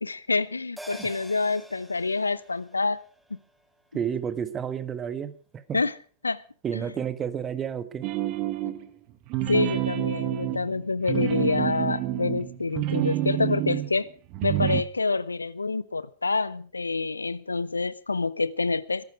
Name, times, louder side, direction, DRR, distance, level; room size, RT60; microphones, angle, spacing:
voice 1, 0.0-3.0 3.3-3.4 5.7-5.9 6.2-6.4 9.5-14.1 14.4-19.0, left 3 dB, 80° left, 0.7 m, -27 dB
sound 1, 0.8-5.5 5.8-5.9, equal, 5° right, 2.5 m, -49 dB
voice 2, 3.9-5.8 6.6-8.1, right 8 dB, 25° right, 1.6 m, -31 dB
sound 2, 8.0-8.9 9.3-13.9 14.3-14.8, right 14 dB, 45° right, 1.6 m, -28 dB
21.0 x 12.0 x 4.9 m
figure-of-eight pair, 95°, 0 cm